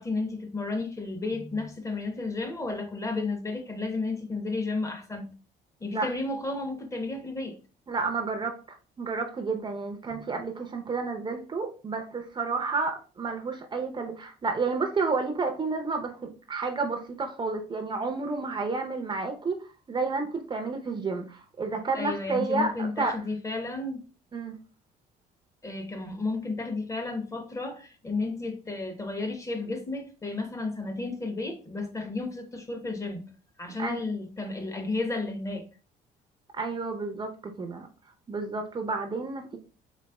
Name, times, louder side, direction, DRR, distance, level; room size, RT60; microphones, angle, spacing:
voice 1, 0.0-5.3 5.8-7.6 10.1-10.2 21.9-24.0 25.6-33.3 33.6-35.7, left 3 dB, 20° left, 0.8 m, -32 dB
voice 2, 7.9-16.1 16.5-19.6 19.9-23.2 24.3-24.6 33.8-34.0 36.6-37.9 38.3-39.6, right 4 dB, 25° right, 0.6 m, -30 dB
4.1 x 3.3 x 2.2 m
cardioid pair, 110°, 17 cm